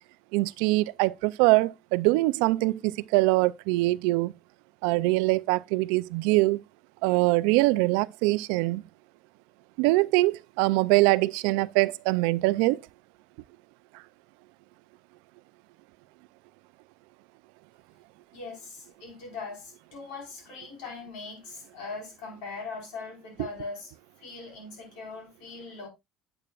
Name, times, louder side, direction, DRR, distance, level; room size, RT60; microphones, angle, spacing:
voice 1, 0.3-4.3 4.8-6.6 7.0-8.8 9.8-12.8, right 21 dB, 90° right, 0.4 m, -23 dB
voice 2, 18.3-23.9 24.2-25.9, left 4 dB, 80° left, 4.7 m, -40 dB
8.8 x 8.6 x 2.4 m
cardioid pair, 125°, 0 cm